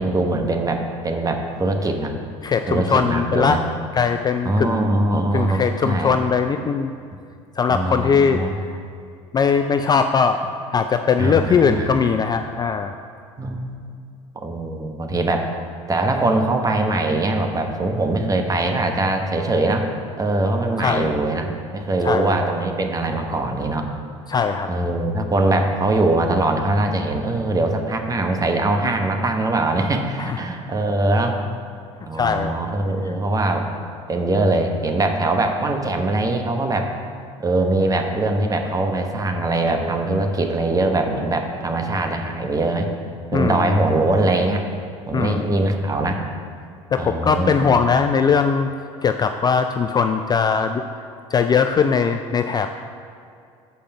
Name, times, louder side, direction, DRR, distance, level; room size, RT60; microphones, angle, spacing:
voice 1, 0.0-2.1 2.7-3.6 4.4-6.1 7.7-8.6 11.2-11.9 13.4-13.8 14.4-15.4 15.9-19.9 20.2-23.9 24.7-31.4 32.0-33.7 34.1-36.9 37.4-42.9 43.3-44.6 45.1-46.2 47.0-47.7 51.8-51.9, right 2 dB, 20° right, 4 dB, 1.0 m, -22 dB
voice 2, 2.4-3.6 3.9-4.9 5.3-6.9 7.6-8.4 8.7-8.8 9.3-10.4 10.7-12.9 20.8-21.2 22.0-22.3 24.3-24.7 30.2-30.4 32.1-32.6 33.0-33.2 43.3-43.8 45.1-45.5 46.9-48.7 49.0-50.8 51.3-52.7, left 6 dB, 25° left, 7 dB, 0.3 m, -20 dB
6.9 x 5.1 x 5.9 m, 2.3 s
hypercardioid pair, 70°, 16 cm